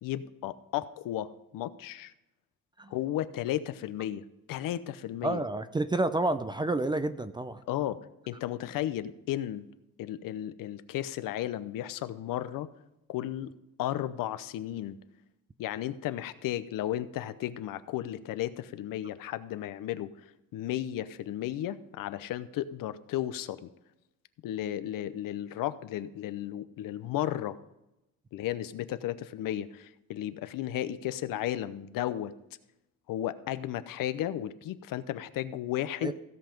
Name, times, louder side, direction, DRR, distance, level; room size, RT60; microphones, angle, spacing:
voice 1, 0.0-2.1 2.9-5.4 7.7-8.0 8.3-9.7 10.0-12.7 13.1-13.5 13.8-15.0 15.6-20.1 20.5-23.7 24.4-27.6 28.3-32.3 33.1-36.1, left 12 dB, 70° left, 14 dB, 0.8 m, -34 dB
voice 2, 5.2-7.6 36.0-36.1, right 2 dB, 15° right, 12 dB, 0.4 m, -29 dB
16.0 x 5.7 x 5.2 m, 0.91 s
cardioid pair, 135°, 35 cm